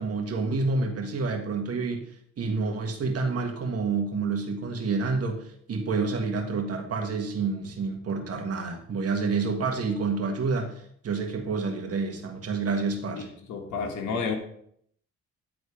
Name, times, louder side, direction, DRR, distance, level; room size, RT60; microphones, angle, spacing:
voice 1, 0.0-2.1 2.4-13.3, right 4 dB, 50° right, 3 dB, 1.6 m, -28 dB
voice 2, 13.1-14.4, left 5 dB, 80° left, 1 dB, 1.5 m, -31 dB
9.8 x 4.0 x 4.9 m, 0.67 s
cardioid pair, 90°, 30 cm